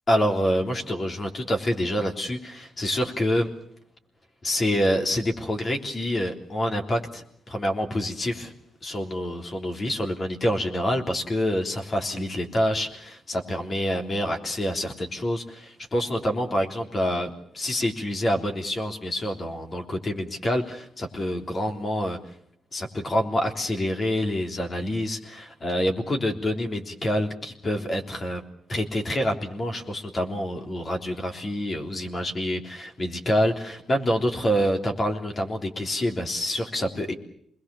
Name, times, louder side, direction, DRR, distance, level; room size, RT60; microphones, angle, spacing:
voice 1, 0.1-3.5 4.4-8.5 8.8-17.3 17.5-22.2 22.7-28.4 28.7-37.1, equal, 35° left, 3 dB, 3.4 m, -27 dB
27.0 x 21.0 x 7.0 m, 0.70 s
cardioid pair, 90°, 0 cm